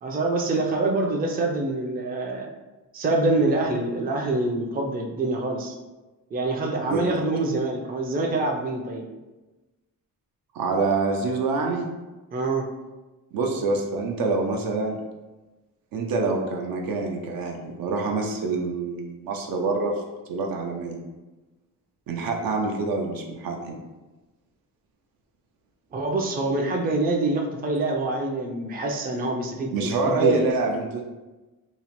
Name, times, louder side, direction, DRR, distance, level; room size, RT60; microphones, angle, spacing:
voice 1, 0.0-2.5 2.9-5.7 6.3-9.1 12.3-12.7 25.9-30.4, right 2 dB, 25° right, 1 dB, 0.4 m, -25 dB
voice 2, 10.5-11.9 13.3-15.0 15.9-20.0 20.3-21.0 22.1-23.8 29.7-31.0, right 3 dB, 80° right, 1 dB, 0.6 m, -26 dB
2.8 x 2.0 x 2.9 m, 1.1 s
cardioid pair, 95°, 34 cm